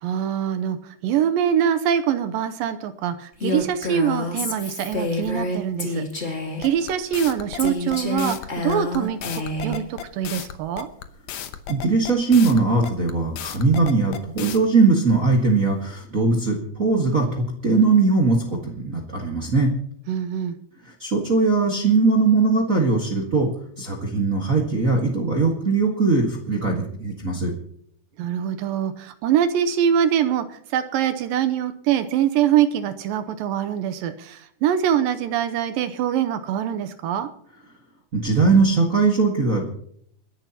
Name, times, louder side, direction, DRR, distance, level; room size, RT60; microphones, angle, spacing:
voice 1, 0.0-10.9 20.1-20.6 28.2-37.3, right 9 dB, 75° right, 9 dB, 2.4 m, -24 dB
Female speech woman speaking, 3.4-6.7 7.6-9.8, left 2 dB, 25° left, 1.5 m, -28 dB
sound 1, 6.6-14.6, left 11 dB, 75° left, 1.7 m, -34 dB
voice 2, 11.7-18.4 18.6-19.7 21.0-23.5 23.8-27.5 38.1-39.7, right 3 dB, 50° right, -1 dB, 0.9 m, -20 dB
29.0 x 11.0 x 2.9 m, 0.66 s
omnidirectional pair, 4.3 m